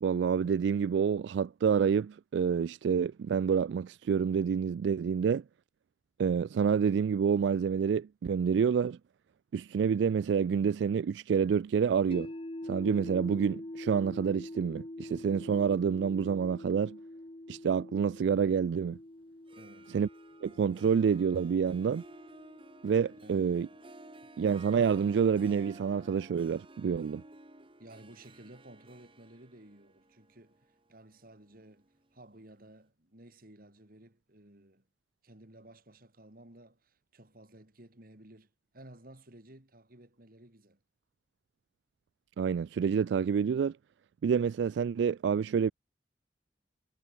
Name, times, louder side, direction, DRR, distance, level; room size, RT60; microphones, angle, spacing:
voice 1, 0.0-5.4 6.2-9.0 9.5-12.3 12.6-17.0 17.5-19.0 19.9-20.1 20.4-22.0 22.8-23.7 24.4-27.2 42.4-43.7 44.2-45.7, right 6 dB, 80° right, 0.3 m, -28 dB
sound 1, 12.1-24.2, left 1 dB, 30° left, 1.4 m, -46 dB
Harp, 19.3-32.3, right 2 dB, 30° right, 3.2 m, -54 dB
voice 2, 19.5-20.0 23.2-23.8 27.8-34.8 35.2-40.8, right 1 dB, 55° right, 3.3 m, -55 dB
head